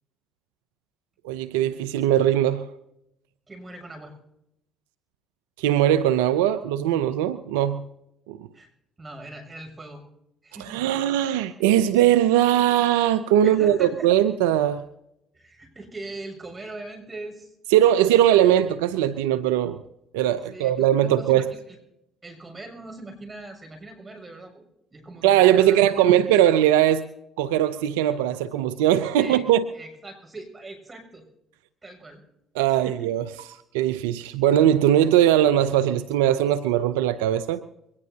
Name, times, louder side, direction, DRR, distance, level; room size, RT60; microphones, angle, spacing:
voice 1, 1.2-2.7 5.6-7.9 8.3-8.4 10.7-14.8 17.7-19.8 20.1-21.5 25.2-27.1 27.4-29.6 32.6-33.2 33.7-37.6, right 11 dB, 85° right, 12 dB, 0.5 m, -20 dB
voice 2, 3.5-4.1 8.5-8.7 9.0-10.0 10.4-11.1 13.4-14.1 15.3-17.6 20.5-21.8 22.2-24.6 24.9-25.9 29.2-29.4 29.7-31.2 31.8-32.2 32.7-33.1, right 2 dB, 25° right, 4 dB, 7.1 m, -41 dB
23.0 x 19.5 x 2.9 m, 0.80 s
hypercardioid pair, 60°, 0 cm